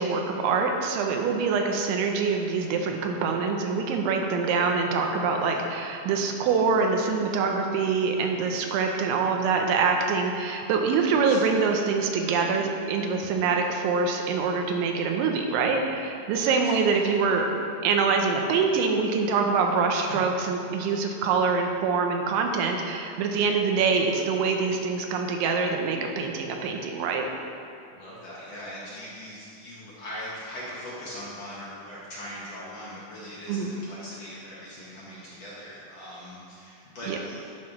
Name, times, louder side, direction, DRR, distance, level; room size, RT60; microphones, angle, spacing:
voice 1, 0.0-17.5 17.8-27.3 33.5-33.7 37.1-37.2, right 5 dB, 85° right, 3 dB, 3.2 m, -25 dB
voice 2, 11.1-11.4 16.4-17.1 20.1-20.2 27.9-37.4, equal, 55° left, -8 dB, 1.8 m, -41 dB
11.0 x 6.5 x 5.8 m, 2.5 s
omnidirectional pair, 5.3 m